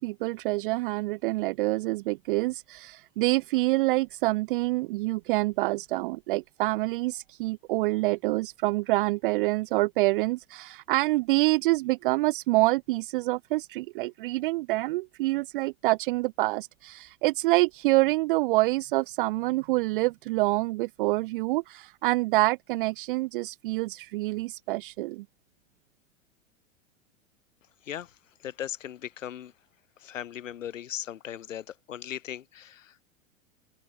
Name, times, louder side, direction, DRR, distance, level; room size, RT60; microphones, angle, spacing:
voice 1, 0.0-25.2, right 21 dB, 40° right, 0.5 m, -26 dB
voice 2, 27.8-29.5 30.0-33.0, left 10 dB, 70° left, 1.7 m, -38 dB
open air
figure-of-eight pair, 95°, 40 cm